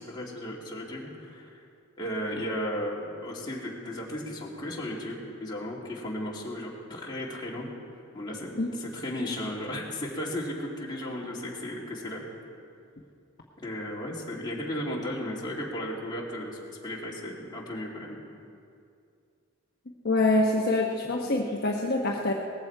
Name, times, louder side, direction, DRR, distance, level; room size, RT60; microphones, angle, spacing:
voice 1, 0.0-1.6 2.0-7.7 8.1-12.2 13.6-18.2, left 1 dB, 20° left, -4 dB, 2.6 m, -35 dB
voice 2, 20.0-22.3, left 2 dB, 50° left, -2 dB, 1.1 m, -25 dB
19.5 x 15.0 x 4.7 m, 2.4 s
head